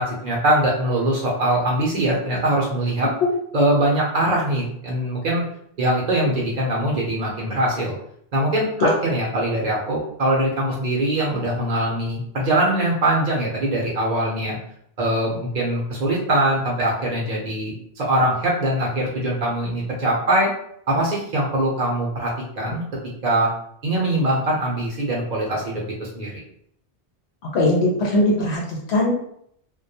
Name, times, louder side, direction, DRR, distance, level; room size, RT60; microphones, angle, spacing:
voice 1, 0.0-3.1 3.5-5.4 5.8-8.0 8.3-14.6 15.0-20.5 20.9-22.8 23.2-23.5 23.8-26.3, right 1 dB, 50° right, -3 dB, 0.7 m, -22 dB
voice 2, 27.5-29.1, left 1 dB, 80° left, -2 dB, 0.9 m, -20 dB
2.2 x 2.1 x 2.7 m, 0.69 s
omnidirectional pair, 1.1 m